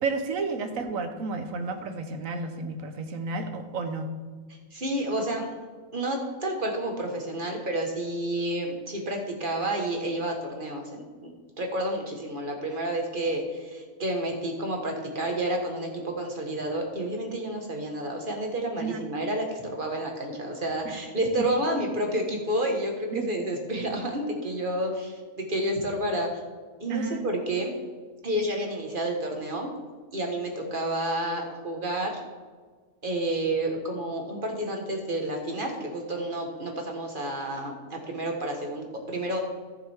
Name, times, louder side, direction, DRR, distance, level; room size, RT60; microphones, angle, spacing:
voice 1, 0.0-4.1 18.8-19.0 20.8-21.0 23.1-23.3 26.9-27.3, right 4 dB, 65° right, 6 dB, 1.3 m, -31 dB
voice 2, 4.7-5.4 5.9-11.3 11.6-22.9 23.3-26.3 26.8-27.7 28.2-29.7 30.1-32.2 33.0-39.4, right 1 dB, 35° right, 2 dB, 1.5 m, -30 dB
14.5 x 6.6 x 3.5 m, 1.5 s
omnidirectional pair, 1.6 m